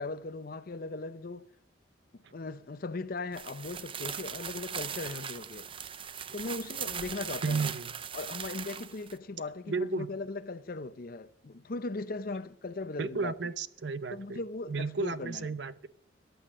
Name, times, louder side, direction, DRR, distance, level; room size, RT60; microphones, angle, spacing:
voice 1, 0.0-1.5 2.1-5.7 6.3-7.7 8.1-13.3 14.1-15.5, left 3 dB, 50° left, 0.6 m, -38 dB
sound 1, 3.3-9.2, right 8 dB, 25° right, 0.5 m, -39 dB
voice 2, 7.4-7.9 9.7-10.1 13.0-14.4 14.7-15.9, right 4 dB, 65° right, 0.7 m, -33 dB
14.5 x 9.4 x 6.5 m
head